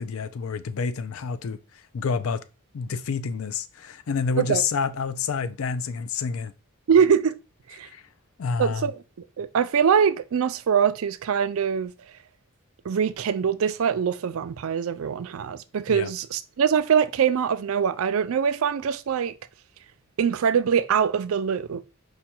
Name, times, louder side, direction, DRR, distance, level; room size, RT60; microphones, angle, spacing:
voice 1, 0.0-1.6 1.9-2.4 2.7-6.5 7.8-8.0 8.4-8.9 15.9-16.1, left 5 dB, 80° left, 0.4 m, -28 dB
voice 2, 6.9-7.4 7.8-7.9 8.6-9.0 9.4-11.9 12.9-19.3 20.2-21.8, right 7 dB, 80° right, 0.4 m, -23 dB
5.0 x 2.3 x 4.3 m
head